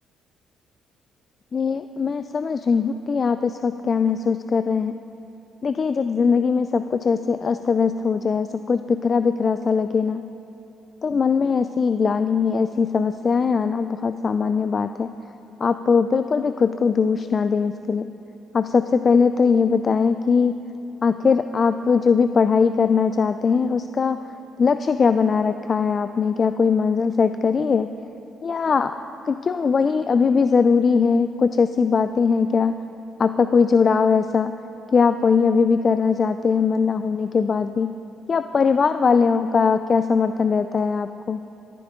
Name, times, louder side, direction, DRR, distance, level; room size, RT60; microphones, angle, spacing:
voice 1, 1.5-4.9 5.6-10.3 11.0-15.1 15.6-18.1 18.5-20.6 21.0-24.2 24.6-27.9 28.4-29.0 29.3-32.8 33.2-34.5 34.9-38.0 38.3-41.4, left 5 dB, 45° left, 10 dB, 0.3 m, -20 dB
17.5 x 9.6 x 3.7 m, 2.9 s
supercardioid pair, 65°, 0 cm